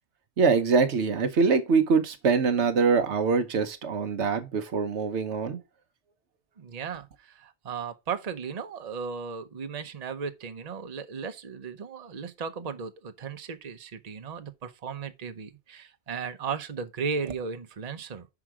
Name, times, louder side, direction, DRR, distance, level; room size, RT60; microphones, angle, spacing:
voice 1, 0.4-5.6, right 5 dB, 80° right, 1.2 m, -24 dB
voice 2, 6.6-18.3, right 5 dB, 40° right, 0.8 m, -36 dB
6.0 x 4.9 x 4.9 m
omnidirectional pair, 1.2 m